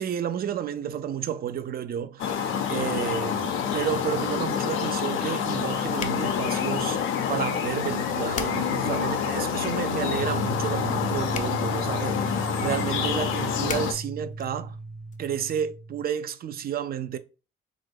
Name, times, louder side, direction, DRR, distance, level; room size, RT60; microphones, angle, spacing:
voice 1, 0.0-7.0 7.3-14.8 15.2-17.2, right 9 dB, 50° right, 0.4 m, -31 dB
sound 1, 2.2-13.9, left 8 dB, 85° left, 0.5 m, -27 dB
sound 2, 10.2-16.0, right 2 dB, 85° right, 1.0 m, -35 dB
sound 3, 14.6-15.2, left 5 dB, 40° left, 0.6 m, -44 dB
3.1 x 2.5 x 3.3 m
cardioid pair, 90°, 20 cm